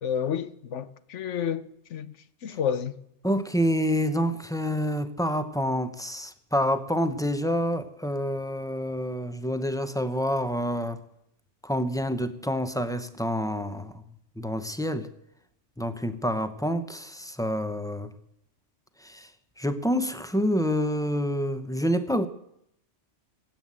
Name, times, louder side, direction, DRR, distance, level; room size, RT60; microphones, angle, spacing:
voice 1, 0.0-2.1 2.4-3.0, left 8 dB, 70° left, 1.1 m, -30 dB
voice 2, 3.2-11.0 11.6-14.0 14.4-15.1 15.8-18.1 19.0-19.3 19.6-22.3, equal, 5° left, 0.6 m, -27 dB
17.0 x 8.7 x 7.5 m
omnidirectional pair, 1.3 m